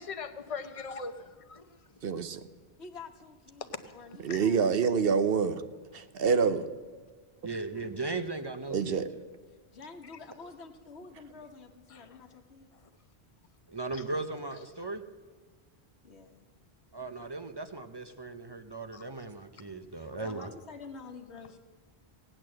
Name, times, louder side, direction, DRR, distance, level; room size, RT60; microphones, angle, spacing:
voice 1, 0.0-2.0 3.6-4.4 10.0-10.1 11.9-12.3 12.7-12.9 18.9-19.0, left 4 dB, 35° left, 0.9 m, -42 dB
voice 2, 2.0-2.4 4.2-5.6 5.9-6.6 8.7-9.1, right 6 dB, 65° right, 1.0 m, -26 dB
voice 3, 2.8-4.7 9.7-12.8 16.0-16.5 19.9-21.6, left 4 dB, 80° left, 1.5 m, -48 dB
voice 4, 7.4-9.1 13.7-15.0 16.9-20.5, right 3 dB, 25° right, 0.7 m, -37 dB
17.5 x 8.9 x 7.6 m
omnidirectional pair, 1.1 m